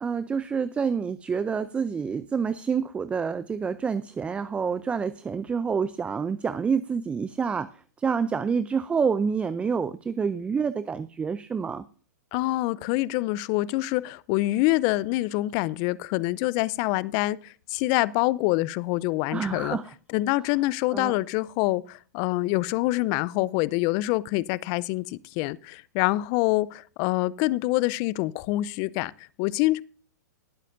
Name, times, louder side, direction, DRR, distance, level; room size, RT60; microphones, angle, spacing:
voice 1, 0.0-7.7 8.0-11.8 19.3-19.9 20.9-21.1, right 6 dB, 10° right, 0.4 m, -28 dB
voice 2, 12.3-19.8 20.1-29.8, left 19 dB, 40° left, 0.5 m, -26 dB
19.0 x 8.3 x 2.6 m
hypercardioid pair, 120°, 10 cm